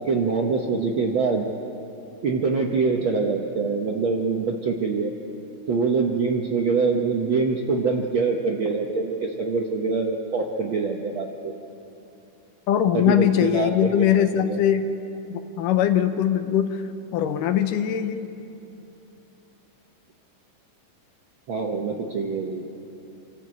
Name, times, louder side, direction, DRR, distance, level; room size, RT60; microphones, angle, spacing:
voice 1, 0.1-1.4 2.2-5.1 5.7-11.5 12.9-14.6 21.5-22.7, right 4 dB, 90° right, 0 dB, 1.0 m, -24 dB
voice 2, 12.7-14.9 15.6-16.8 17.1-18.3, left 10 dB, 75° left, 9 dB, 2.3 m, -21 dB
26.0 x 13.5 x 8.3 m, 2.8 s
omnidirectional pair, 4.0 m